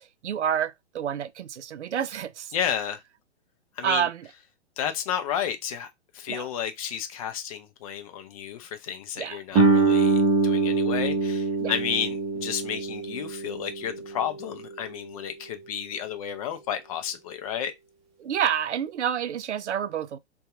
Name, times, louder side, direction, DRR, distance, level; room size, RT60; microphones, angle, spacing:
voice 1, 0.0-2.5 3.8-4.3 6.3-6.5 9.2-9.4 11.6-11.7 18.2-20.2, right 9 dB, 80° right, 0.5 m, -29 dB
voice 2, 2.5-3.0 3.8-4.1 4.8-5.9 6.1-17.7, left 9 dB, 30° left, 0.5 m, -32 dB
Guitar, 9.5-14.9, right 3 dB, 20° right, 0.7 m, -24 dB
2.7 x 2.4 x 3.6 m
figure-of-eight pair, 120°, 34 cm